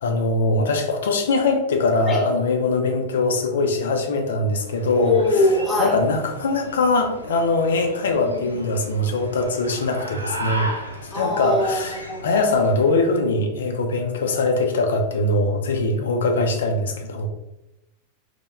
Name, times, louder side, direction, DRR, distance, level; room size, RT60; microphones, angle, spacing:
voice 1, 0.0-5.5 5.8-10.7 11.1-17.3, left 2 dB, 65° left, 4 dB, 0.4 m, -22 dB
sound 1, 4.5-13.1, right 1 dB, 90° right, 0.3 m, -36 dB
voice 2, 5.0-5.9 8.3-8.6 11.1-11.8 12.1-12.4, left 2 dB, 15° left, -3 dB, 0.7 m, -22 dB
2.1 x 2.1 x 2.9 m, 0.94 s
figure-of-eight pair, 90°, 0 cm